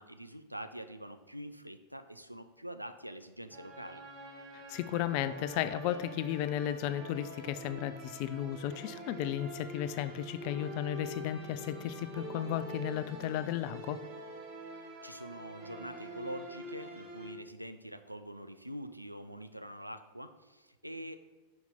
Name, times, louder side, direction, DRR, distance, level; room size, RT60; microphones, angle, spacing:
voice 1, 0.0-4.0 14.7-21.2, right 1 dB, 90° right, 9 dB, 0.3 m, -45 dB
sound 1, 3.5-17.3, right 1 dB, 40° right, 1.3 m, -46 dB
voice 2, 4.5-14.0, left 11 dB, 45° left, 12 dB, 0.3 m, -34 dB
5.8 x 4.3 x 3.8 m, 1.3 s
figure-of-eight pair, 90°, 0 cm